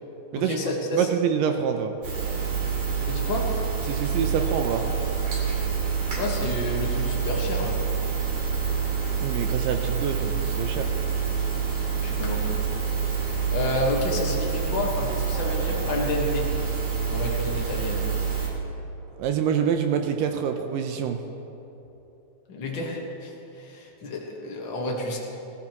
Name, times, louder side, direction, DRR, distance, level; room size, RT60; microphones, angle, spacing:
voice 1, 0.3-1.1 3.0-3.5 6.2-7.8 12.0-12.5 13.5-16.5 17.1-18.0 22.5-25.2, left 2 dB, 70° left, -2 dB, 1.1 m, -30 dB
voice 2, 0.9-1.9 3.9-4.9 9.2-10.9 19.2-21.2, right 8 dB, 80° right, 6 dB, 2.0 m, -26 dB
sound 1, 2.0-18.5, right 6 dB, 50° right, 3.5 m, -27 dB
18.5 x 13.5 x 3.0 m, 3.0 s
omnidirectional pair, 4.5 m